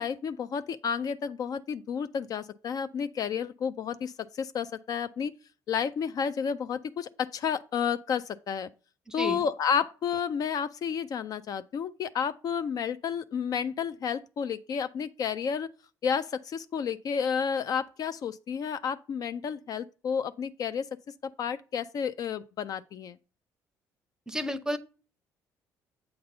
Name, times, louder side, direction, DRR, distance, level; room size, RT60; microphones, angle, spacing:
voice 1, 0.0-5.3 5.7-8.7 9.1-15.7 16.0-20.9 21.4-23.2, left 7 dB, 50° left, 0.3 m, -31 dB
voice 2, 9.1-9.5 24.3-24.8, equal, 10° right, 0.6 m, -32 dB
7.8 x 2.6 x 5.3 m
supercardioid pair, 75°, 8 cm